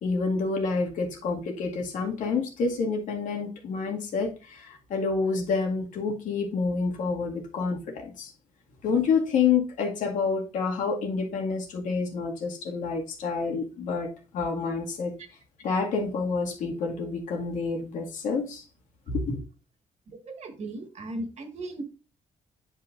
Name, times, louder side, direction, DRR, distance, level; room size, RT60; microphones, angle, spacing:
voice 1, 0.0-8.3 8.8-14.1 14.3-15.2 15.6-18.6 19.1-19.4, left 4 dB, 80° left, 2.1 m, -28 dB
voice 2, 20.3-21.8, right 1 dB, 60° right, 1.8 m, -36 dB
9.6 x 5.7 x 2.6 m
cardioid pair, 90°, 13 cm